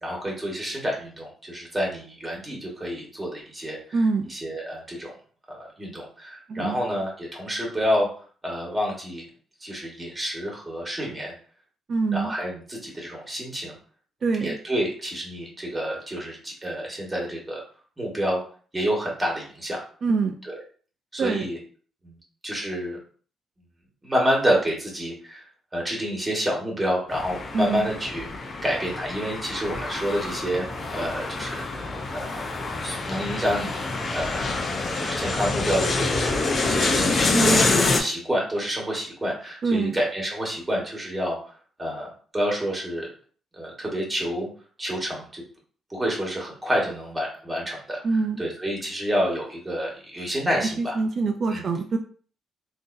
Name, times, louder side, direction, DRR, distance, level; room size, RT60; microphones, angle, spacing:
voice 1, 0.0-4.0 4.3-5.1 5.5-8.1 8.4-9.2 9.6-11.3 12.1-13.8 14.4-17.6 18.0-18.4 18.7-19.8 20.5-20.6 21.1-21.6 22.0-22.2 22.4-23.0 24.0-25.4 25.7-28.3 28.6-30.6 30.9-32.4 32.8-33.8 34.1-34.4 35.0-41.5 41.8-42.1 42.3-43.1 43.6-44.5 44.8-45.4 45.9-48.0 48.4-50.9 51.5-51.6, equal, 15° right, -2 dB, 1.6 m, -28 dB
voice 2, 3.9-4.2 6.5-6.8 11.9-12.3 14.2-14.6 20.0-20.4 21.2-21.5 27.5-27.9 37.3-37.7 39.6-40.0 48.0-48.4 50.6-52.0, right 4 dB, 50° right, 5 dB, 0.4 m, -24 dB
sound 1, 27.1-38.0, left 3 dB, 40° left, 0.7 m, -26 dB
3.6 x 2.7 x 2.6 m, 0.43 s
cardioid pair, 90°, 0 cm